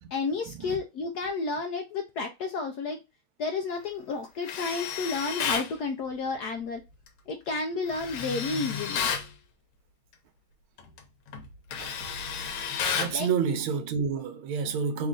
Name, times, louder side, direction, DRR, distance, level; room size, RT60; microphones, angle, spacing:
voice 1, 0.1-3.0 3.4-6.8 7.3-9.0 13.1-13.3, left 4 dB, 75° left, 0.9 m, -31 dB
Tools, 4.4-5.7 7.9-9.3 10.8-11.0 11.3-13.2, left 7 dB, 90° left, 1.7 m, -31 dB
voice 2, 12.9-15.1, right 6 dB, 80° right, 1.5 m, -29 dB
3.9 x 2.5 x 3.6 m
omnidirectional pair, 2.3 m